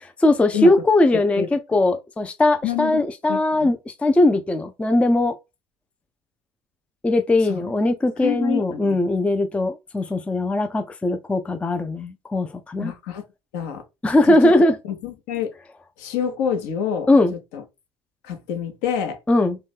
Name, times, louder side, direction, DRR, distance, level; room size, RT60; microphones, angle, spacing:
voice 1, 0.0-5.3 7.0-12.9 14.0-14.8 17.1-17.3 19.3-19.6, left 2 dB, 10° left, 0.4 m, -20 dB
voice 2, 2.6-3.0 3.3-3.7 7.5-7.6 8.2-9.0 12.8-13.2 13.5-13.8 14.3-15.5 16.0-17.1 17.5-17.6 18.2-19.2, left 9 dB, 60° left, 0.8 m, -27 dB
3.0 x 2.7 x 3.3 m
figure-of-eight pair, 60°, 14 cm